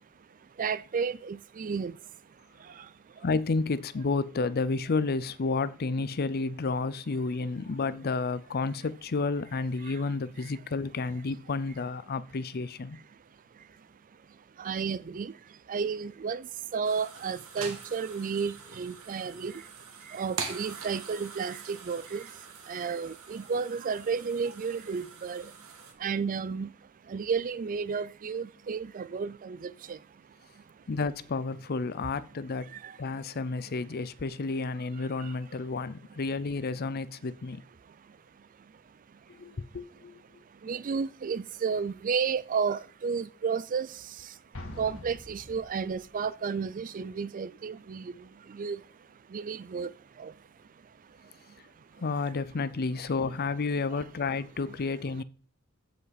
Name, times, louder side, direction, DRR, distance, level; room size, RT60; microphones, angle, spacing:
voice 1, 0.6-1.9 14.6-15.3 15.7-16.5 16.7-19.5 20.1-22.2 22.7-25.5 26.0-26.7 27.1-30.0 32.8-32.9 40.6-43.9 44.8-48.1 48.5-48.8 49.3-49.9 50.2-50.3, right 5 dB, 40° right, 0.4 m, -32 dB
voice 2, 3.2-13.0 30.9-32.7 33.0-37.6 39.3-40.2 52.0-55.2, left 3 dB, 45° left, 0.5 m, -31 dB
sound 1, 16.8-25.9, right 5 dB, 75° right, 1.7 m, -44 dB
Explosion, 44.5-46.3, left 1 dB, 65° left, 2.8 m, -45 dB
14.5 x 5.6 x 4.1 m
head